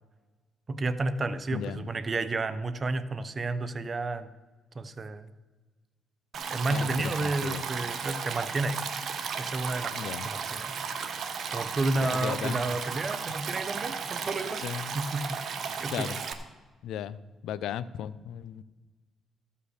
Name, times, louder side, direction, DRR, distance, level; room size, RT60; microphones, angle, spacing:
voice 1, 0.7-4.3 4.7-5.3 6.5-8.8 9.4-10.8 11.5-15.4 15.8-16.2, right 2 dB, 35° right, 12 dB, 0.6 m, -31 dB
voice 2, 1.5-1.9 6.7-7.6 9.9-10.3 12.0-12.6 14.6-15.0 15.9-16.2 16.8-18.6, left 9 dB, 80° left, 17 dB, 0.4 m, -36 dB
Stream, 6.3-16.3, right 6 dB, 60° right, 1.0 m, -35 dB
14.0 x 5.6 x 6.5 m, 1.3 s
cardioid pair, 90°, 0 cm